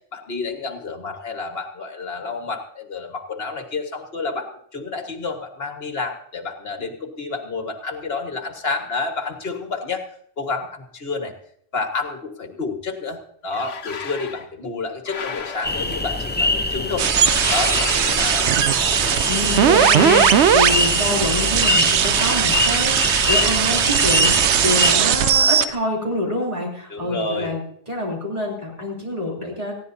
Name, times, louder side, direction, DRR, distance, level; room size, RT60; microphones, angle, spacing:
voice 1, 0.1-10.0 10.4-11.3 11.7-17.1 17.5-18.5 26.9-27.5, left 4 dB, 55° left, 5 dB, 1.8 m, -29 dB
sound 1, 13.5-14.5 15.1-16.1 17.2-18.8 19.6-20.9, left 6 dB, 85° left, 1.3 m, -32 dB
sound 2, 15.6-25.0, left 2 dB, 15° left, 0.4 m, -24 dB
sound 3, 17.0-25.6, right 9 dB, 70° right, 0.9 m, -18 dB
voice 2, 19.3-27.6 27.9-29.7, left 1 dB, 30° right, -3 dB, 3.5 m, -26 dB
19.0 x 15.0 x 2.8 m, 0.64 s
omnidirectional pair, 1.2 m